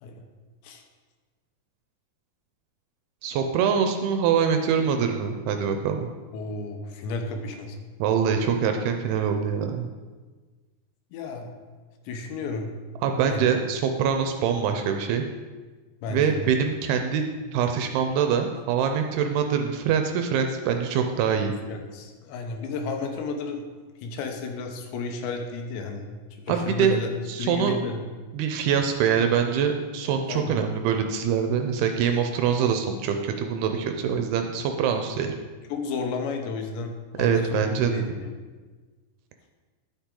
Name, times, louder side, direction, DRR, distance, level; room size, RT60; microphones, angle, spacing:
voice 1, 3.2-6.1 8.0-9.9 13.0-15.3 16.1-17.2 17.5-21.5 26.5-27.0 27.3-27.7 28.3-35.4 37.2-38.1, right 7 dB, 80° right, 5 dB, 2.4 m, -24 dB
voice 2, 6.3-7.8 11.1-11.5 12.0-12.7 13.3-13.5 16.0-16.5 21.6-23.6 24.0-26.2 26.5-27.1 27.4-28.0 30.3-30.6 34.9-35.2 35.7-38.3, left 3 dB, 90° left, 4 dB, 3.2 m, -32 dB
10.5 x 7.2 x 3.8 m, 1.4 s
omnidirectional pair, 4.9 m